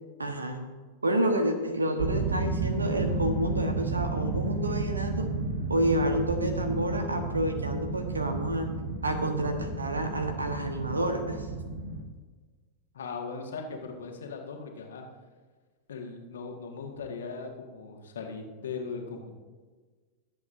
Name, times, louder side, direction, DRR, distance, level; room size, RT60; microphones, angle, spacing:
voice 1, 0.2-0.6 1.0-5.3 5.7-8.7 9.0-11.5, right 1 dB, 80° right, 7 dB, 1.2 m, -29 dB
sound 1, 2.0-12.0, right 3 dB, 60° right, 1.0 m, -32 dB
voice 2, 12.9-15.0 15.9-19.4, left 4 dB, 65° left, 2 dB, 1.8 m, -39 dB
22.0 x 8.1 x 2.6 m, 1.4 s
figure-of-eight pair, 90°, 0 cm